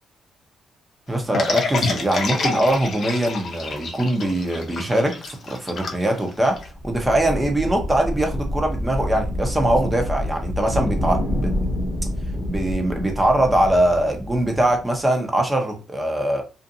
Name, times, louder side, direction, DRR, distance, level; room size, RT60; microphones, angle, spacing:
voice 1, 1.1-11.5 12.4-16.4, right 1 dB, 15° right, 3 dB, 0.8 m, -22 dB
sound 1, 1.3-6.7, left 4 dB, 55° left, 0.6 m, -27 dB
sound 2, 6.5-15.0, left 1 dB, 15° left, 1.0 m, -27 dB
2.5 x 2.5 x 2.6 m, 0.34 s
cardioid pair, 90°, 0 cm